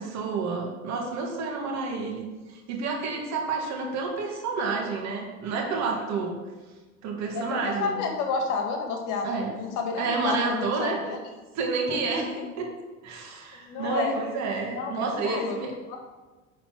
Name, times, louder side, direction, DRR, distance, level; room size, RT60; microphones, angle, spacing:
voice 1, 0.0-6.4 7.0-8.0 9.2-9.5 10.0-11.0 11.5-12.3 12.6-12.7 13.0-15.7, right 4 dB, 45° right, 1 dB, 2.1 m, -29 dB
voice 2, 7.3-11.2 11.9-12.5 13.7-14.2 14.8-15.6 15.9-16.0, left 4 dB, 50° left, 4 dB, 1.7 m, -31 dB
10.0 x 4.2 x 6.2 m, 1.2 s
figure-of-eight pair, 70°, 40 cm